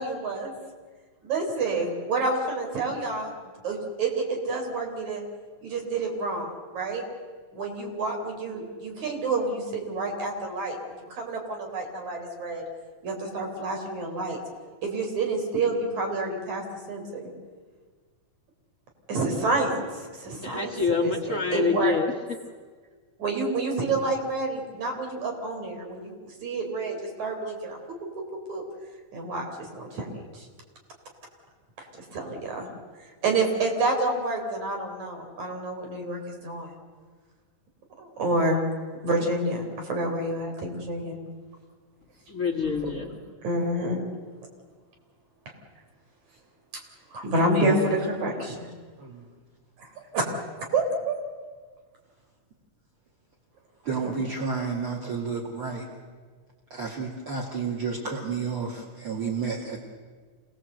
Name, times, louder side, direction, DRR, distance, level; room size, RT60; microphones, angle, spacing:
voice 1, 0.0-0.5 1.3-3.3 3.6-5.2 5.6-7.0 7.5-10.8 11.1-12.6 13.0-14.4 14.8-17.3 19.1-22.0 23.2-27.8 28.2-28.3 28.5-28.6 29.1-30.1 30.3-30.5 31.8-31.9 32.1-32.7 33.2-36.8 38.0-38.6 39.0-41.2 42.6-42.7 43.4-44.0 47.1-47.7 48.1-48.7 49.8-49.9 50.1-50.3 50.6-51.2 54.0-54.1, right 2 dB, 65° right, 2 dB, 5.1 m, -28 dB
voice 2, 20.4-22.4 42.3-43.1, left 5 dB, 50° left, 2 dB, 0.9 m, -27 dB
voice 3, 53.8-55.9 56.7-59.8, right 4 dB, 45° right, -3 dB, 3.1 m, -31 dB
27.0 x 18.5 x 8.0 m, 1.5 s
omnidirectional pair, 3.5 m